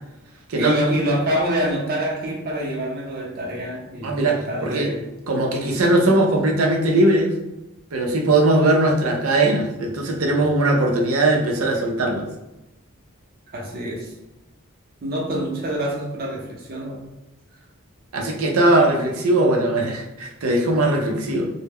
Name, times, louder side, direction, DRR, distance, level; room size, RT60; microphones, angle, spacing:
voice 1, 0.5-5.1 13.5-14.1 15.0-17.0, right 1 dB, 45° right, -1 dB, 0.6 m, -26 dB
voice 2, 4.0-4.9 5.3-7.3 7.9-12.3 18.1-21.5, right 2 dB, 90° right, 1 dB, 0.5 m, -19 dB
2.1 x 2.0 x 3.4 m, 0.93 s
head